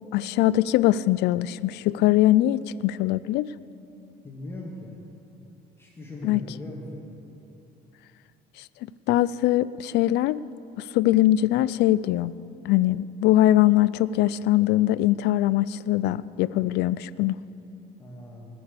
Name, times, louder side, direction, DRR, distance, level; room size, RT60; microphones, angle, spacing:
voice 1, 0.1-3.5 6.2-6.4 9.1-10.4 10.8-12.3 12.7-17.3, left 14 dB, 80° left, 18 dB, 0.4 m, -22 dB
voice 2, 4.2-4.9 5.8-7.0 18.0-18.5, left 1 dB, 15° left, -3 dB, 2.0 m, -39 dB
19.0 x 7.0 x 8.1 m, 2.8 s
cardioid pair, 110°, 17 cm